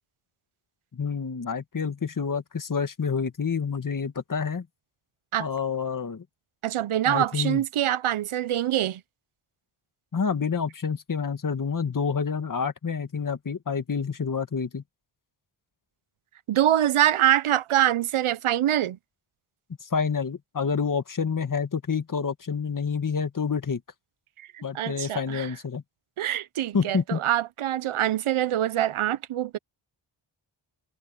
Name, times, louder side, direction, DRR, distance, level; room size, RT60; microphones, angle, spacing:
voice 1, 0.9-4.7 5.4-6.2 7.1-7.6 10.1-14.8 19.8-23.8 24.6-25.8 26.7-27.2, left 5 dB, 40° left, 2.0 m, -28 dB
voice 2, 6.6-9.0 16.5-19.0 24.5-25.5 26.2-29.6, right 12 dB, 75° right, 0.9 m, -24 dB
cardioid pair, 70°, 49 cm